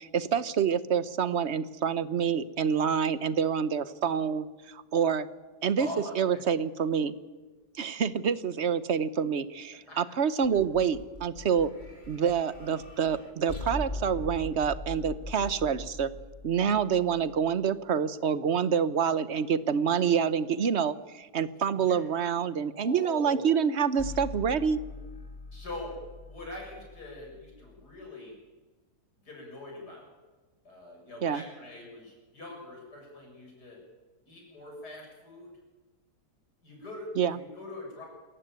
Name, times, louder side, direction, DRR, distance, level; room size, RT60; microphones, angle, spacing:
voice 1, 0.0-5.3 5.6-5.9 6.2-7.1 7.8-11.7 12.1-16.1 16.4-24.8 31.2-31.4 37.2-37.4, right 7 dB, 50° right, 14 dB, 1.1 m, -27 dB
voice 2, 5.8-6.4 9.7-10.0 21.7-22.0 22.7-23.5 25.5-28.4 29.2-30.1 30.6-33.8 34.3-35.5 36.6-38.1, left 1 dB, 85° left, 0 dB, 8.0 m, -43 dB
sound 1, 10.4-17.7 24.0-28.1, left 2 dB, 30° left, 2.6 m, -42 dB
27.5 x 15.0 x 9.1 m, 1.3 s
omnidirectional pair, 1.7 m